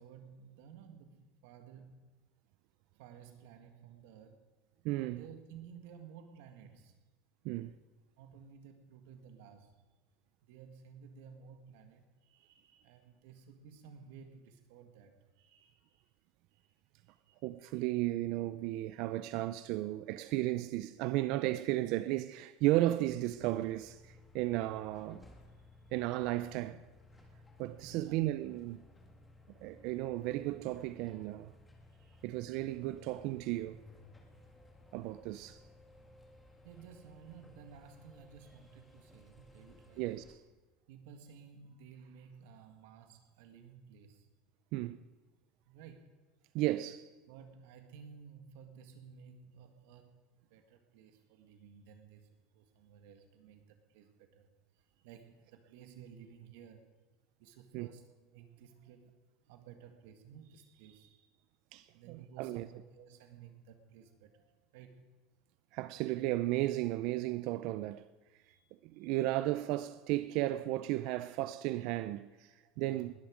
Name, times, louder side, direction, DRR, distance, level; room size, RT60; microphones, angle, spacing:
voice 1, 0.0-2.1 3.0-4.4 5.0-7.0 8.2-9.8 10.5-16.0 16.5-16.7 17.1-17.4 27.9-28.4 31.9-32.3 36.6-40.0 40.9-44.3 45.7-46.2 47.3-56.9 57.4-59.2 59.5-61.4 61.9-65.1 68.4-68.6 68.9-69.3 72.7-73.1, right 7 dB, 75° right, 1.7 m, -55 dB
voice 2, 4.8-5.2 7.4-7.7 17.4-25.2 25.9-26.8 27.6-28.8 29.6-31.5 32.2-33.8 34.9-35.6 40.0-40.4 44.7-45.0 46.5-47.1 57.7-57.9 61.7-62.7 65.7-68.0 68.8-73.1, right 16 dB, 60° right, 0.4 m, -34 dB
sound 1, 23.0-40.4, left 2 dB, 10° left, 1.8 m, -59 dB
20.0 x 10.5 x 5.1 m
supercardioid pair, 140°, 0 cm